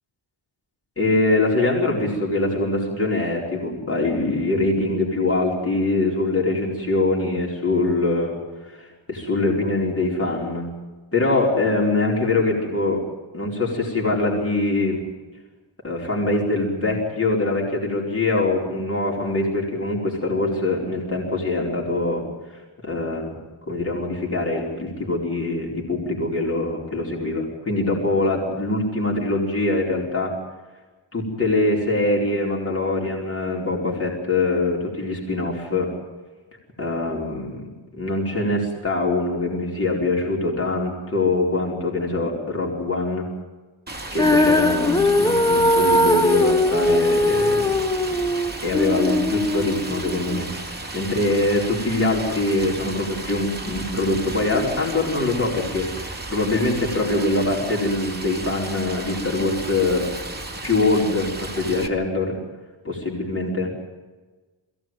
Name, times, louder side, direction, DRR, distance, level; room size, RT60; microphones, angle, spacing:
voice 1, 1.0-10.7 11.1-13.0 13.3-15.0 15.8-23.4 23.7-30.3 31.1-35.9 36.8-43.3 44.1-47.7 48.6-50.5 50.9-55.9 56.3-60.1 60.6-62.4 62.8-63.7, left 2 dB, 30° left, -3 dB, 4.8 m, -23 dB
Stream, 43.9-61.9, right 2 dB, 20° right, 2.0 m, -34 dB
Female singing, 44.2-50.4, left 1 dB, 10° left, 0.7 m, -20 dB
22.0 x 17.0 x 9.1 m, 1.2 s
wide cardioid pair, 125°, 48 cm